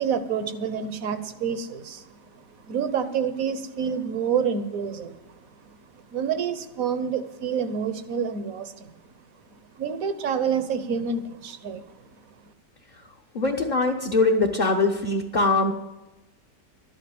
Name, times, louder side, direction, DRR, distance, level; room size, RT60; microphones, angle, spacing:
voice 1, 0.0-8.9 9.7-11.9 12.4-12.5, right 7 dB, 55° right, 11 dB, 1.3 m, -28 dB
voice 2, 13.3-15.7, left 3 dB, 35° left, 1 dB, 0.8 m, -22 dB
12.0 x 8.7 x 8.5 m, 1.0 s
omnidirectional pair, 1.9 m